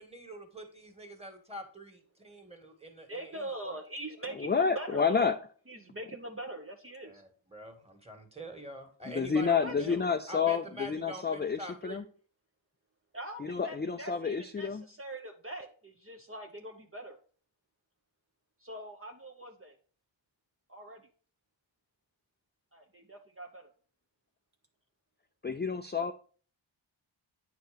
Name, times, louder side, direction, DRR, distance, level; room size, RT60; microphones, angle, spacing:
voice 1, 0.0-1.9 2.3-3.8 7.0-10.0 10.3-12.0, right 1 dB, 15° right, 4 dB, 1.8 m, -45 dB
voice 2, 3.1-5.3 5.7-7.2 9.5-10.1 13.1-17.2 18.6-19.7 20.7-21.1 22.7-23.7, right 1 dB, 30° right, 2 dB, 0.8 m, -42 dB
voice 3, 4.4-5.4 9.1-12.0 13.4-14.8 25.4-26.1, left 6 dB, 25° left, 8 dB, 0.4 m, -29 dB
9.1 x 4.6 x 5.1 m, 0.43 s
wide cardioid pair, 90°, 47 cm